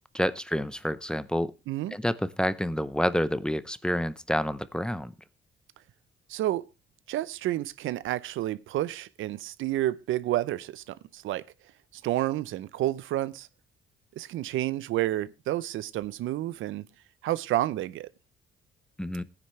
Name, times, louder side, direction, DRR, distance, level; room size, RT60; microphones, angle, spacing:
voice 1, 0.1-1.5 1.9-5.1 19.0-19.2, equal, 5° left, 0.7 m, -28 dB
voice 2, 1.7-2.0 6.3-6.6 7.1-11.5 12.0-13.5 14.2-16.8 17.2-18.1, right 14 dB, 80° right, 0.6 m, -30 dB
17.5 x 10.0 x 3.2 m
cardioid pair, 90°, 20 cm